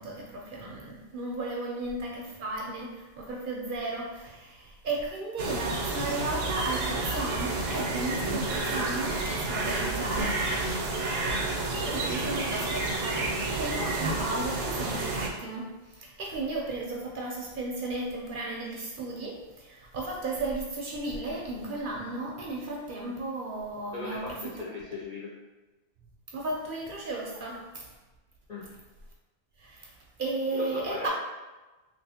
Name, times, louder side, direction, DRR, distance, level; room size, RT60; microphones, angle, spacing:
voice 1, 0.0-10.8 11.7-13.3 13.6-24.5 26.3-27.9 29.6-31.1, right 2 dB, 60° right, -2 dB, 0.6 m, -34 dB
sound 1, 5.4-15.3, right 2 dB, 85° right, 0.9 m, -30 dB
voice 2, 23.9-25.3 28.5-28.6 30.5-31.1, left 3 dB, 60° left, -6 dB, 0.4 m, -38 dB
3.0 x 3.0 x 2.7 m, 1.2 s
omnidirectional pair, 1.2 m